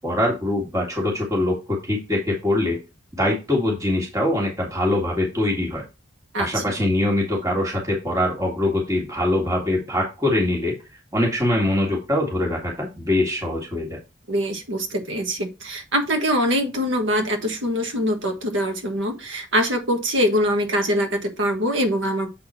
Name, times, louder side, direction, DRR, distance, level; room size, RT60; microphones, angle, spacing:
voice 1, 0.0-2.8 3.2-5.8 6.4-10.7 11.1-14.0, left 1 dB, 15° right, -2 dB, 1.9 m, -23 dB
voice 2, 14.3-22.4, equal, 85° right, 5 dB, 1.6 m, -23 dB
7.5 x 4.2 x 4.3 m, 0.28 s
head